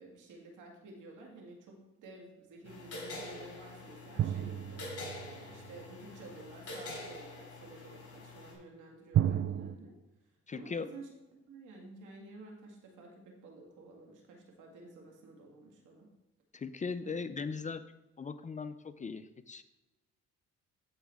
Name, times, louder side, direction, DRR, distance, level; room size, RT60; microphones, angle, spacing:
voice 1, 0.0-4.8 5.1-10.0 10.5-16.1 17.0-17.2, right 2 dB, 80° right, 0 dB, 2.1 m, -52 dB
sound 1, 2.6-8.5, left 2 dB, 50° left, 3.3 m, -46 dB
sound 2, 4.2-5.8 9.1-9.7, right 11 dB, 45° right, 0.4 m, -32 dB
voice 2, 10.5-10.9 16.5-17.8 18.2-19.6, left 5 dB, 25° left, 11 dB, 0.5 m, -38 dB
13.5 x 4.8 x 3.5 m, 1.0 s
cardioid pair, 90°, 30 cm